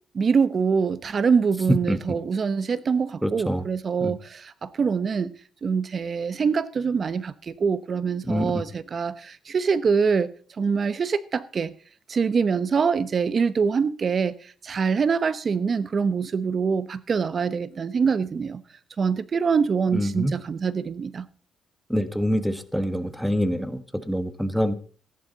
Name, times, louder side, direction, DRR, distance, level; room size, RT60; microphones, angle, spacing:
voice 1, 0.1-5.3 5.6-10.3 10.6-11.7 12.1-18.6 19.0-21.3, right 5 dB, 45° right, 0.9 m, -24 dB
voice 2, 3.2-3.6 4.0-4.1 8.2-8.6 19.9-20.3 21.9-24.7, equal, ahead, 1.2 m, -26 dB
14.5 x 11.5 x 4.0 m
cardioid pair, 90°, 0 cm